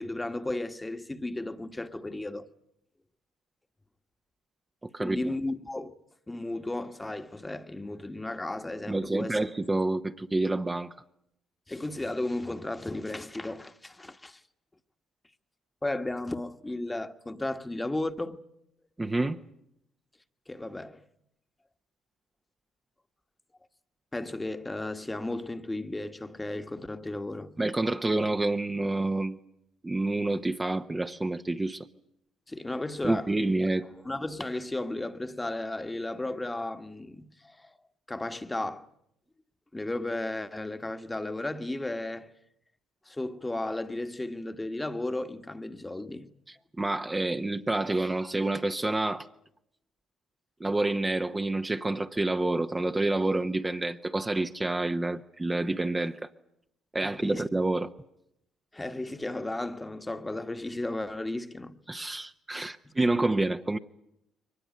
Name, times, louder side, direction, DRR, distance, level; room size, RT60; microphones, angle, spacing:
voice 1, 0.0-2.5 5.0-6.0 6.3-9.4 11.7-14.4 15.8-18.4 20.5-21.0 24.1-27.6 32.5-33.3 34.0-37.7 38.1-38.9 39.7-42.3 43.1-46.3 57.0-57.4 58.7-61.8 62.8-63.4, left 2 dB, 15° left, 1.4 m, -34 dB
voice 2, 4.9-5.3 8.9-10.9 19.0-19.4 27.6-29.4 29.8-31.9 33.0-33.9 46.5-49.3 50.6-56.3 56.9-57.9 61.9-63.8, right 2 dB, 20° right, 0.9 m, -28 dB
23.0 x 19.5 x 9.5 m
supercardioid pair, 65°, 0 cm